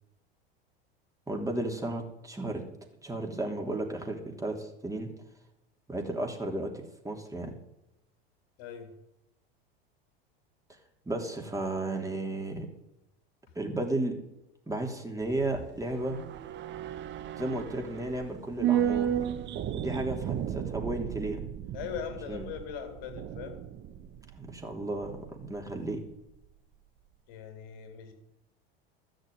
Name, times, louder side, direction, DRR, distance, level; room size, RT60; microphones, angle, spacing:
voice 1, 1.3-2.6 3.0-5.1 5.9-7.6 11.0-12.7 13.5-14.2 14.7-16.2 17.3-19.1 19.7-21.4 22.2-22.5 24.4-26.0, right 2 dB, 10° right, 2 dB, 3.2 m, -33 dB
voice 2, 8.6-8.9 21.7-23.6 27.3-28.1, left 8 dB, 65° left, 3 dB, 3.0 m, -40 dB
sound 1, 15.2-25.7 25.9-26.0, right 10 dB, 40° right, 1.0 m, -34 dB
13.5 x 6.6 x 9.5 m, 0.86 s
hypercardioid pair, 90°, 30 cm